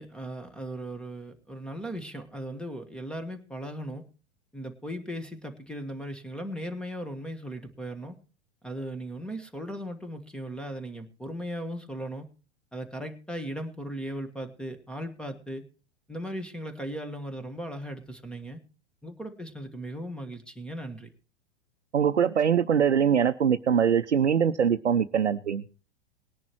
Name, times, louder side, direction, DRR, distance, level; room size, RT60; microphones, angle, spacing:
voice 1, 0.0-4.1 4.5-8.2 8.6-12.3 12.7-15.6 16.1-18.6 19.0-21.1, equal, 5° left, 8 dB, 1.5 m, -37 dB
voice 2, 21.9-25.6, right 7 dB, 85° right, 7 dB, 0.7 m, -23 dB
19.5 x 10.5 x 3.0 m, 0.35 s
figure-of-eight pair, 95°, 34 cm